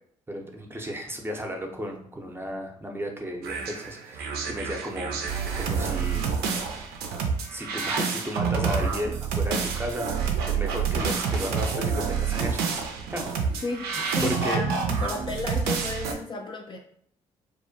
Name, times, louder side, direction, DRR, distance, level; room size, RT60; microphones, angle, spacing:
voice 1, 0.3-5.1 5.5-6.2 7.5-10.1 10.4-12.6 13.1-13.2 14.2-14.6, equal, 15° right, 2 dB, 0.6 m, -33 dB
sound 1, 3.4-16.1, right 6 dB, 75° right, 0.4 m, -28 dB
voice 2, 14.1-16.8, left 3 dB, 30° left, 2 dB, 0.4 m, -33 dB
2.5 x 2.1 x 2.6 m, 0.65 s
hypercardioid pair, 45°, 16 cm